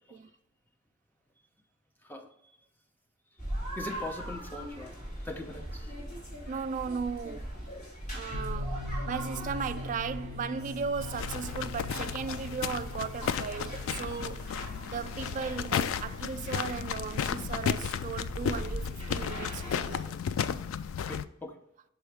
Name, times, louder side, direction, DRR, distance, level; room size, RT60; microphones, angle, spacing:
sound 1, 3.4-20.1, equal, 40° left, 2.4 m, -40 dB
voice 1, 3.8-5.9 14.1-14.2 21.1-21.6, left 1 dB, 10° left, 0.7 m, -42 dB
voice 2, 6.5-7.5 8.1-14.6 14.9-20.1, right 6 dB, 40° right, 0.3 m, -36 dB
sound 2, 8.3-16.7, left 3 dB, 70° left, 0.7 m, -45 dB
sound 3, 11.0-21.3, left 7 dB, 85° left, 0.3 m, -34 dB
6.1 x 4.8 x 3.4 m
head